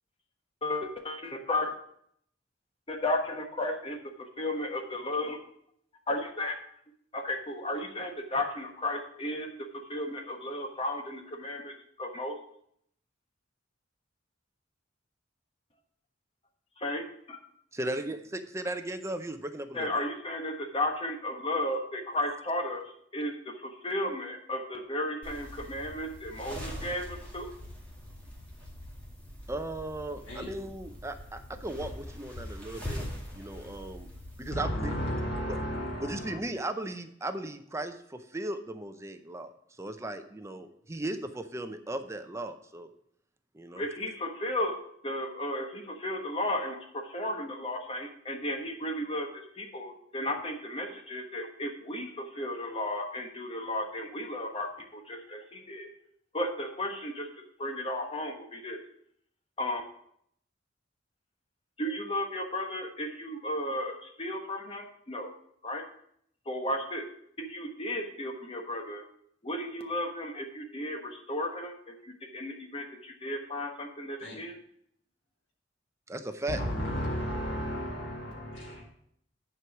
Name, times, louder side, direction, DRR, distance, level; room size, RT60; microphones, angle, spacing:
voice 1, 0.6-1.7 2.9-4.0 4.4-5.4 6.1-6.5 7.1-9.5 9.9-12.4 16.8-17.4 19.7-27.5 43.7-44.8 45.0-55.9 56.3-57.3 57.6-58.8 59.6-59.8 61.8-65.3 65.6-65.9 66.5-67.1 67.4-69.0 69.4-74.5, left 1 dB, 30° left, 4 dB, 1.2 m, -34 dB
voice 2, 17.7-19.9 22.3-22.4 29.5-33.0 33.3-34.1 34.4-34.9 35.5-35.6 36.0-39.5 39.8-42.9 43.5-43.8 76.1-76.6, right 1 dB, 15° right, 8 dB, 0.6 m, -36 dB
sound 1, 25.2-34.5, left 1 dB, 10° left, 2.2 m, -43 dB
voice 3, 34.5-36.4 74.2-74.4 76.5-78.8, equal, 75° left, -4 dB, 2.3 m, -33 dB
10.0 x 4.7 x 5.9 m, 0.69 s
head